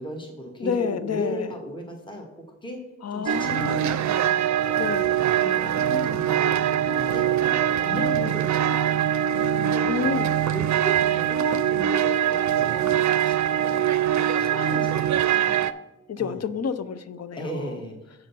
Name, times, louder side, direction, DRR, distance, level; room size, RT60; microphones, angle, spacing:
voice 1, 0.0-2.3 2.6-2.8 3.1-4.1 5.4-9.0 9.5-9.9 10.5-13.6 14.3-15.4 16.2-16.4 17.4-18.1, equal, 15° left, 2 dB, 1.5 m, -36 dB
voice 2, 0.6-1.5 3.0-4.0 4.8-5.1 8.2-8.3 9.9-10.3 14.5-14.7 15.3-15.7 16.1-17.7, left 6 dB, 55° left, 13 dB, 0.6 m, -30 dB
sound 1, 3.3-15.7, right 10 dB, 70° right, 0.5 m, -23 dB
7.7 x 5.0 x 5.5 m, 0.98 s
cardioid pair, 55°, 30 cm